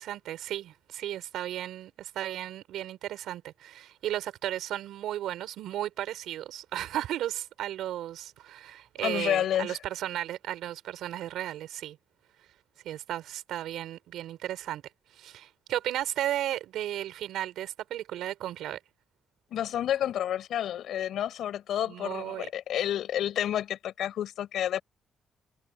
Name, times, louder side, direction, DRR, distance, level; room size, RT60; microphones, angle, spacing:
voice 1, 0.0-12.0 12.8-14.8 15.1-18.8 21.9-22.5, right 12 dB, 85° right, 4.6 m, -34 dB
voice 2, 9.0-9.8 19.5-24.8, left 11 dB, 75° left, 4.3 m, -30 dB
cardioid pair, 90°, 0 cm